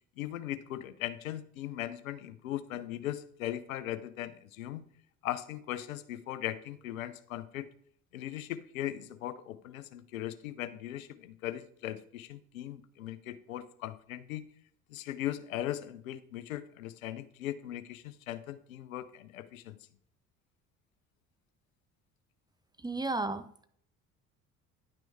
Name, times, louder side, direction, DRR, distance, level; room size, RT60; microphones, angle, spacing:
voice 1, 0.2-4.8 5.2-7.7 8.1-14.4 14.9-19.8, left 13 dB, 80° left, 14 dB, 0.6 m, -39 dB
voice 2, 22.8-23.7, right 2 dB, 10° right, 11 dB, 0.7 m, -33 dB
10.5 x 6.0 x 3.4 m, 0.63 s
hypercardioid pair, 55°, 40 cm